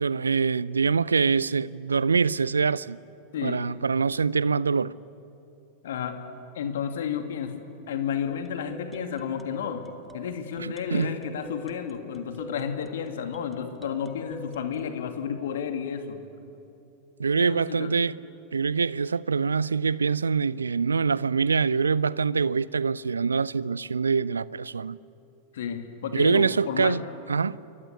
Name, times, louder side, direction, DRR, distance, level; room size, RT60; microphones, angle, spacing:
voice 1, 0.0-3.0 3.4-4.9 10.6-11.1 17.2-18.2 18.5-25.0 26.1-27.0 27.3-27.6, right 5 dB, 75° right, 0.5 m, -24 dB
voice 2, 3.3-3.7 5.8-6.2 6.5-7.5 7.9-9.8 10.1-16.2 17.4-17.9 25.5-27.0, left 8 dB, 60° left, 2.6 m, -31 dB
sound 1, 8.3-15.0, right 1 dB, 5° right, 1.8 m, -45 dB
28.5 x 23.5 x 8.5 m
figure-of-eight pair, 90°, 0 cm